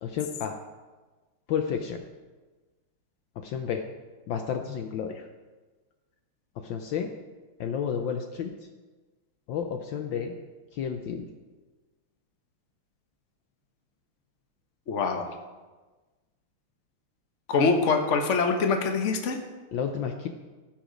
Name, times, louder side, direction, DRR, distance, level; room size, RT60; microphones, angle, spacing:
voice 1, 0.0-0.6 1.5-2.0 3.4-3.8 4.3-5.2 6.6-7.1 7.6-8.5 9.5-10.3 10.7-11.2 19.7-20.3, left 7 dB, 70° left, 5 dB, 1.3 m, -31 dB
voice 2, 14.9-15.3 17.5-19.4, left 4 dB, 45° left, 5 dB, 1.0 m, -24 dB
16.0 x 6.0 x 5.1 m, 1.3 s
omnidirectional pair, 2.4 m